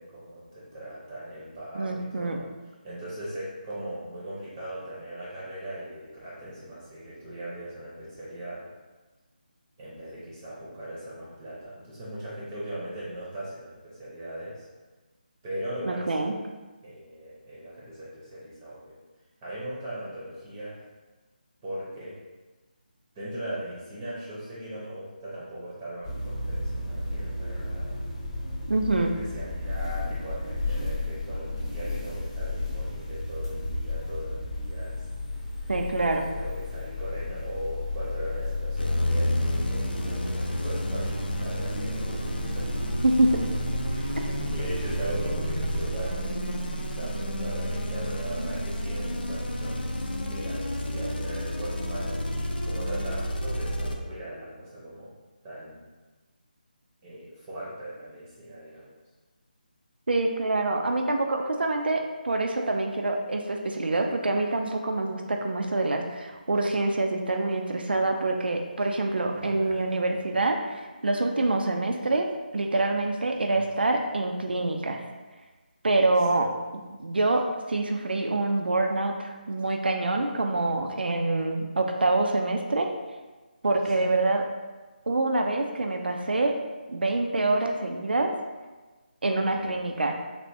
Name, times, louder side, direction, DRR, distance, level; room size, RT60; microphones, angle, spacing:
voice 1, 0.0-2.5 2.8-8.7 9.8-14.7 15.4-16.3 16.8-18.9 19.4-20.8 21.6-22.2 23.1-27.9 28.9-35.1 35.5-35.7 36.0-42.7 43.9-49.8 50.3-55.1 55.4-55.8 57.0-58.9 69.4-70.2 73.4-73.6 76.3-76.5 80.5-80.8 84.0-84.2 89.4-90.0, right 1 dB, 20° right, -8 dB, 0.6 m, -39 dB
voice 2, 1.7-2.4 15.9-16.3 28.7-29.1 35.7-36.3 43.0-43.5 60.1-72.3 72.5-75.0 75.8-76.5 77.0-82.9 83.6-84.4 85.1-86.5 86.9-88.3 89.2-90.1, right 2 dB, 85° right, 3 dB, 0.4 m, -26 dB
sound 1, 26.0-45.9, left 2 dB, 30° left, 0.6 m, -33 dB
sound 2, 38.8-54.0, equal, 80° left, 0.4 m, -30 dB
3.3 x 2.5 x 2.6 m, 1.3 s
figure-of-eight pair, 160°, 5 cm